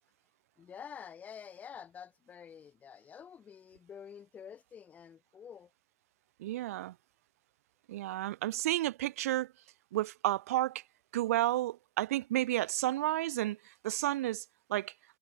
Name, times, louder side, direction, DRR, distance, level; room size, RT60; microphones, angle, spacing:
voice 1, 0.6-5.7, left 7 dB, 20° left, 3.3 m, -49 dB
voice 2, 6.4-6.9 7.9-9.5 9.9-10.8 11.1-14.4 14.7-14.9, right 15 dB, 80° right, 1.3 m, -31 dB
supercardioid pair, 155°, 8 cm